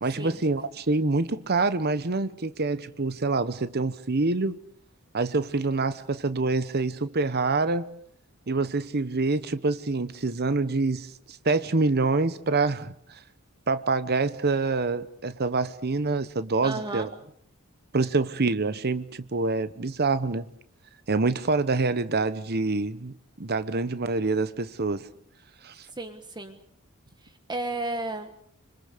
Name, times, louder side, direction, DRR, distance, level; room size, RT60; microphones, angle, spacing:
voice 1, 0.0-4.6 5.1-7.9 8.5-13.2 13.7-17.1 17.9-20.5 21.1-25.1 25.6-25.8, right 3 dB, 50° right, 1.0 m, -26 dB
voice 2, 16.6-17.1 26.0-26.6 27.2-28.3, right 2 dB, 20° right, 1.4 m, -33 dB
26.0 x 25.5 x 6.7 m
head